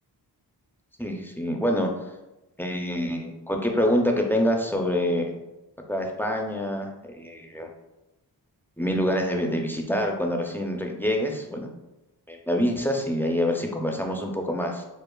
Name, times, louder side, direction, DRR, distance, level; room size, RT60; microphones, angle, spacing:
voice 1, 1.0-1.9 2.6-5.4 5.9-7.7 8.8-11.7 12.3-14.8, equal, 5° left, 1 dB, 0.5 m, -26 dB
6.6 x 2.4 x 2.3 m, 1.0 s
wide cardioid pair, 80°, 42 cm